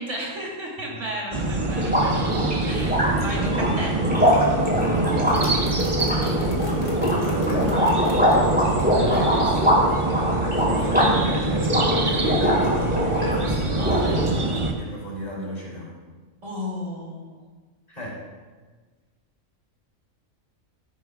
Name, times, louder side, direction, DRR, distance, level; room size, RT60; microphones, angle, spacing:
voice 1, 0.0-2.2 2.6-4.0 16.4-17.4, equal, 65° right, -4 dB, 3.0 m, -33 dB
sound 1, 1.3-14.7, right 2 dB, 30° right, 0.7 m, -25 dB
sound 2, 1.8-13.4 13.7-14.6, equal, 5° right, 3.3 m, -23 dB
voice 2, 4.6-5.8 7.2-9.9 10.9-12.7 13.1-14.3 14.7-16.0 17.9-18.2, equal, 30° left, -5 dB, 3.2 m, -33 dB
sound 3, 5.4-8.4, left 1 dB, 65° left, 1.8 m, -33 dB
14.5 x 10.0 x 2.4 m, 1.4 s
omnidirectional pair, 1.4 m